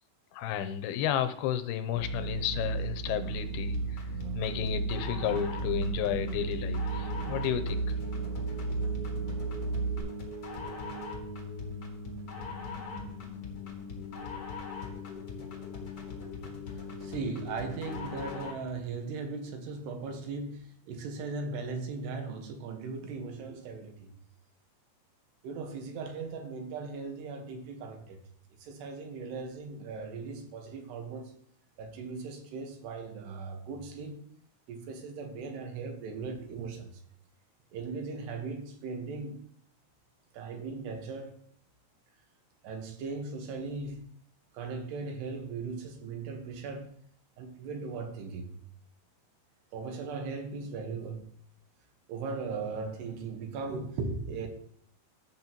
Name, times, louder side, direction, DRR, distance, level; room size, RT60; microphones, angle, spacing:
voice 1, 0.3-4.1 4.3-8.0, left 10 dB, 80° left, 10 dB, 2.5 m, -32 dB
sound 1, 1.9-10.0, right 3 dB, 45° right, 2.0 m, -34 dB
sound 2, 3.7-18.7, left 3 dB, 45° left, 1.3 m, -40 dB
voice 2, 17.0-24.1 25.4-28.2 28.6-31.3 31.8-34.2 34.7-36.9 37.7-39.4 40.3-41.4 42.6-44.0 44.5-46.9 47.4-48.5 49.7-51.3 52.1-54.5, right 4 dB, 85° right, 4 dB, 3.5 m, -38 dB
14.0 x 6.1 x 3.0 m, 0.65 s
omnidirectional pair, 4.6 m